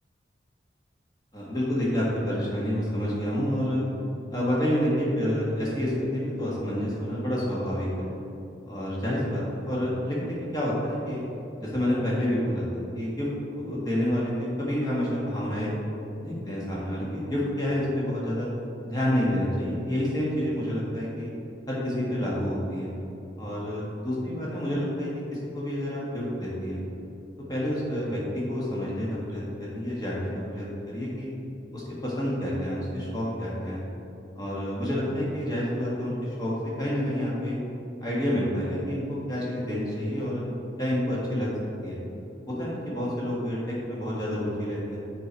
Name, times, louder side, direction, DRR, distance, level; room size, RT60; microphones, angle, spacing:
voice 1, 1.3-3.8 4.3-8.1 8.7-11.2 11.6-13.3 13.6-15.7 16.2-18.5 18.8-21.3 21.7-22.9 23.4-26.8 27.5-31.3 31.7-33.8 34.3-36.5 36.8-37.5 38.0-40.4 40.8-41.5 41.8-42.0 42.5-45.0, equal, 20° left, -6 dB, 1.4 m, -28 dB
6.7 x 4.4 x 4.5 m, 2.9 s
head